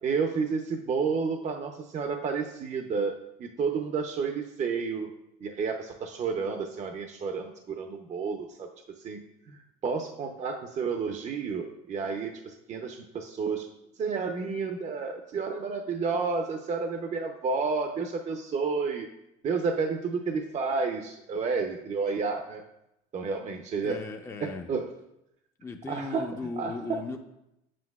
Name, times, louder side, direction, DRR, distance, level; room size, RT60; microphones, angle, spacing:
voice 1, 0.0-5.1 5.4-8.7 9.0-13.7 14.0-19.1 19.4-22.6 23.1-24.0 24.4-24.9 25.9-26.3 26.6-27.2, right 5 dB, 40° right, 5 dB, 0.7 m, -31 dB
voice 2, 23.8-24.7 25.6-27.2, left 3 dB, 15° left, 4 dB, 0.6 m, -37 dB
7.6 x 7.4 x 2.3 m, 0.86 s
supercardioid pair, 90°, 18 cm